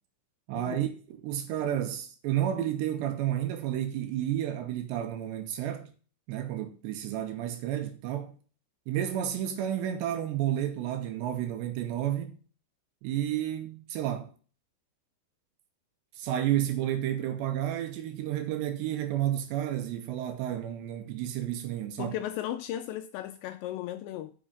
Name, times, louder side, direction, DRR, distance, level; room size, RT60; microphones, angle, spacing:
voice 1, 0.5-5.9 6.3-8.4 8.9-12.4 13.0-14.3 16.2-22.1, right 11 dB, 75° right, 2.8 m, -31 dB
voice 2, 22.0-24.3, left 12 dB, 80° left, 2.6 m, -36 dB
7.8 x 6.3 x 7.1 m
omnidirectional pair, 5.6 m